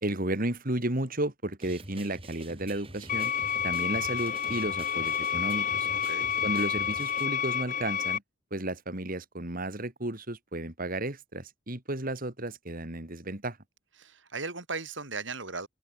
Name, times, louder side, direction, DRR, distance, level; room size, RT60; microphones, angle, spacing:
voice 1, 0.0-3.3 3.6-5.9 6.4-8.2 8.5-13.6, right 1 dB, 45° right, 3.0 m, -33 dB
sound 1, 1.6-7.3, right 2 dB, 30° right, 5.4 m, -46 dB
sound 2, 3.1-8.2, left 7 dB, 40° left, 1.6 m, -29 dB
voice 2, 5.9-6.3 14.0-15.7, right 4 dB, 65° right, 4.3 m, -37 dB
head